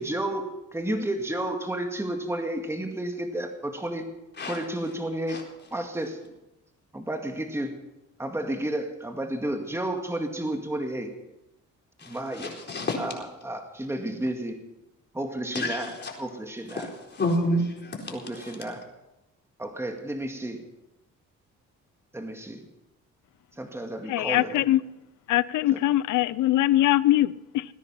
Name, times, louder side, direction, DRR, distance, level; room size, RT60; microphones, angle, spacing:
voice 1, 0.0-4.1 4.5-5.4 5.7-6.2 6.9-7.7 8.2-11.1 12.0-12.6 13.0-14.6 15.1-16.9 18.1-18.8 19.6-20.6 22.1-22.6 23.6-24.6, right 1 dB, 10° right, 2.0 m, -31 dB
voice 2, 12.0-13.0 15.5-16.1 16.8-18.6, left 1 dB, 35° left, 4.2 m, -30 dB
voice 3, 24.1-24.8 25.3-27.6, left 15 dB, 75° left, 0.6 m, -22 dB
19.0 x 10.0 x 5.8 m
cardioid pair, 90°, 30 cm